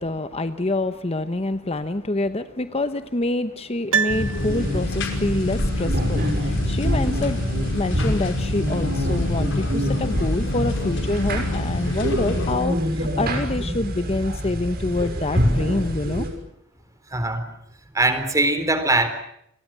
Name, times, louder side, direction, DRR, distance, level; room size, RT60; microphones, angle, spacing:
voice 1, 0.0-16.3, left 2 dB, 30° left, 10 dB, 1.0 m, -26 dB
Piano, 3.9-5.2 5.4-5.5, right 6 dB, 70° right, 1.0 m, -26 dB
sound 1, 4.1-12.5, left 2 dB, 60° left, 5.3 m, -28 dB
sound 2, 4.4-16.3, equal, 45° right, 6.4 m, -26 dB
voice 2, 17.1-17.5 17.9-19.1, right 2 dB, 15° right, 10 dB, 3.7 m, -21 dB
29.5 x 22.0 x 7.6 m, 0.76 s
head